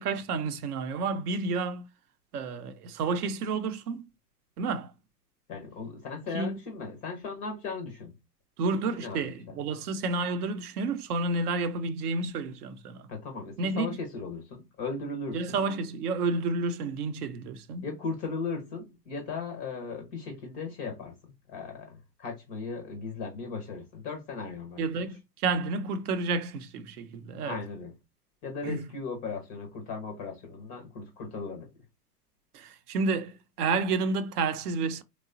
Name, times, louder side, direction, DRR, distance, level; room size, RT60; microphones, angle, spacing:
voice 1, 0.0-1.9 2.3-4.1 4.6-4.9 6.3-6.6 8.6-13.1 13.6-14.0 15.3-17.9 24.8-27.6 28.6-28.9 32.5-35.0, right 3 dB, 65° right, 0.6 m, -30 dB
voice 2, 5.5-8.1 9.0-9.3 13.1-15.6 17.8-25.0 27.4-27.9 28.4-31.7, left 4 dB, 20° left, 0.4 m, -37 dB
3.0 x 2.1 x 2.5 m
hypercardioid pair, 110°, 48 cm